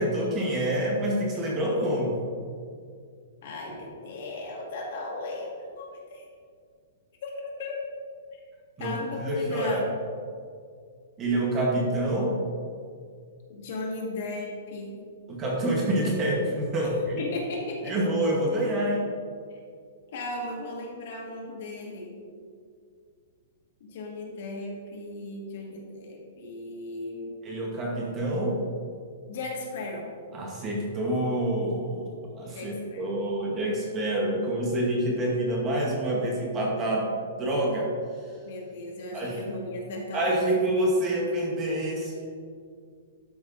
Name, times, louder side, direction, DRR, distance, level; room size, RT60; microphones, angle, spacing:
voice 1, 0.0-2.2 8.8-9.8 11.2-12.3 15.3-17.2 17.8-19.0 27.4-28.6 30.3-37.1 37.4-37.9 39.1-39.4 40.1-42.1, right 1 dB, 20° right, -2 dB, 1.1 m, -27 dB
voice 2, 3.4-6.3 7.2-7.8 8.8-9.8 13.5-15.0 17.2-18.0 19.5-19.6 20.1-22.2 23.8-27.3 29.3-30.1 32.5-33.0 38.4-40.4, left 2 dB, 50° left, -1 dB, 1.7 m, -36 dB
12.0 x 6.0 x 2.7 m, 2.2 s
hypercardioid pair, 165°, 0 cm